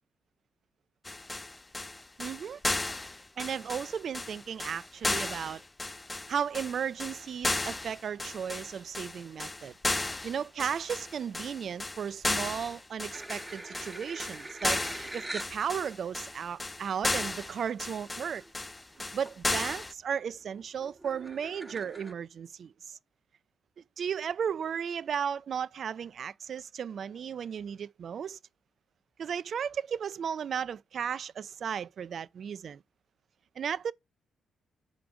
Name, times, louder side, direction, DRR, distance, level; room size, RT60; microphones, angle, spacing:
sound 1, 1.0-19.9, left 2 dB, 20° left, 0.5 m, -34 dB
voice 1, 2.2-2.6 3.4-5.6 6.3-9.7 10.2-18.4 19.1-23.0 24.0-28.4 29.2-32.8 33.6-33.9, right 7 dB, 55° right, 0.4 m, -35 dB
sound 2, 13.1-15.6 16.3-16.4 17.8-17.9 18.1-18.5 18.9-19.4 19.8-22.1, right 2 dB, 15° right, 0.8 m, -44 dB
5.9 x 5.1 x 5.0 m
figure-of-eight pair, 40°, 0 cm